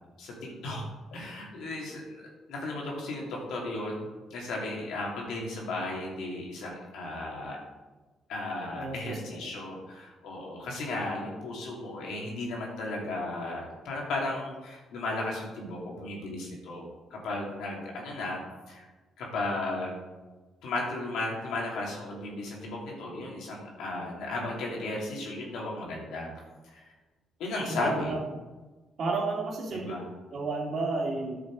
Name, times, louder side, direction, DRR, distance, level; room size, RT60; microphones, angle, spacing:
voice 1, 1.1-7.6 8.3-18.9 19.2-20.0 20.6-26.3 26.7-26.8 27.4-28.1 29.7-30.0, left 2 dB, 85° left, -2 dB, 3.0 m, -35 dB
voice 2, 8.7-9.2 27.7-28.2 29.0-31.4, right 3 dB, 60° right, 0 dB, 2.6 m, -32 dB
10.0 x 6.6 x 4.9 m, 1.2 s
cardioid pair, 90°, 0 cm